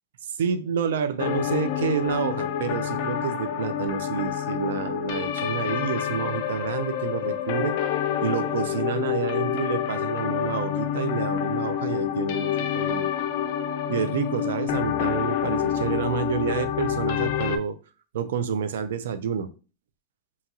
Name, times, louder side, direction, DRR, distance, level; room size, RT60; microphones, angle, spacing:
voice 1, 0.4-7.8 8.2-13.1 13.9-17.8 18.1-19.5, right 7 dB, 80° right, 12 dB, 0.3 m, -29 dB
sound 1, 1.2-17.6, left 9 dB, 60° left, 0.4 m, -28 dB
2.8 x 2.3 x 2.8 m, 0.35 s
hypercardioid pair, 125°, 0 cm